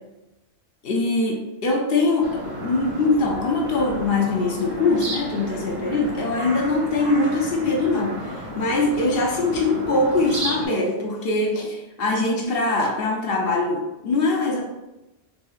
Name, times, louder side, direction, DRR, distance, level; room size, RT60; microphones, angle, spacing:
voice 1, 0.8-14.7, left 2 dB, 60° left, 1 dB, 0.6 m, -22 dB
sound 1, 2.2-10.7, right 1 dB, 45° right, 0.7 m, -33 dB
3.7 x 2.7 x 2.3 m, 0.99 s
omnidirectional pair, 1.3 m